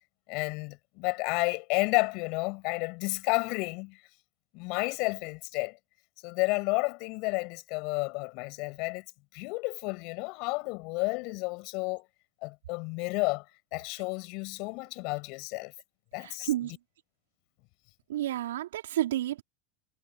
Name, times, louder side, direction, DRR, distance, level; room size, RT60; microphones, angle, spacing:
voice 1, 0.3-4.0 4.5-5.8 6.2-9.0 9.3-12.1 12.4-13.4 13.7-15.7 16.1-16.5, left 29 dB, 55° left, 7.1 m, -31 dB
voice 2, 16.2-16.8 18.1-19.4, right 13 dB, 75° right, 3.4 m, -31 dB
hypercardioid pair, 90°, 0 cm